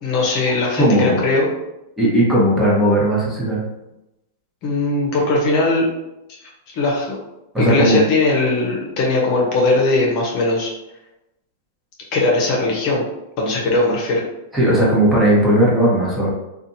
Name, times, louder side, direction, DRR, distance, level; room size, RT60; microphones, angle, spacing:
voice 1, 0.0-1.5 4.6-5.9 6.7-7.2 7.6-10.7 12.1-13.1 13.4-14.2, left 2 dB, 50° left, -2 dB, 0.8 m, -19 dB
voice 2, 0.8-1.2 2.0-3.6 7.5-8.0 14.5-16.3, right 1 dB, 10° right, -6 dB, 1.1 m, -16 dB
2.6 x 2.4 x 2.7 m, 0.93 s
hypercardioid pair, 115°, 0 cm